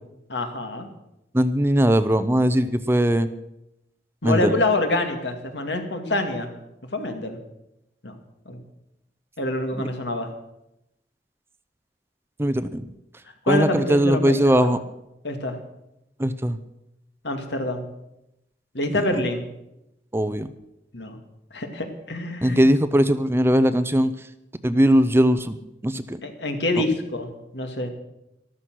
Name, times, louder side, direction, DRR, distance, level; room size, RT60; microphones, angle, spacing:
voice 1, 0.3-0.9 4.2-6.5 6.9-7.4 8.0-8.2 8.5-8.6 9.4-10.3 13.5-14.7 15.2-15.6 17.2-17.9 18.7-19.5 20.9-21.2 21.5-22.6 26.2-27.9, left 2 dB, 75° left, 5 dB, 2.3 m, -26 dB
voice 2, 1.3-3.3 4.2-4.6 12.4-12.8 13.5-14.8 16.2-16.6 20.1-20.5 22.4-24.1 24.6-25.6 25.8-26.2 26.8-26.9, equal, 15° right, 12 dB, 0.6 m, -20 dB
14.0 x 13.0 x 6.3 m, 0.86 s
head